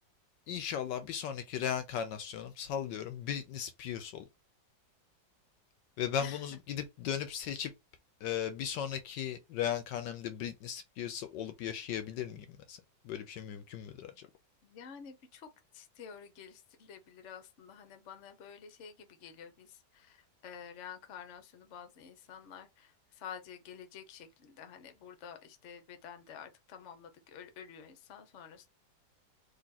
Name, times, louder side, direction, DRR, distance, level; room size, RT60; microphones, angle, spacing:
voice 1, 0.5-4.2 6.0-7.7 8.2-12.8 13.0-14.3, left 9 dB, 70° left, 1.2 m, -37 dB
voice 2, 14.6-15.5 15.7-28.7, left 7 dB, 50° left, 0.9 m, -50 dB
4.1 x 2.9 x 4.0 m
omnidirectional pair, 2.1 m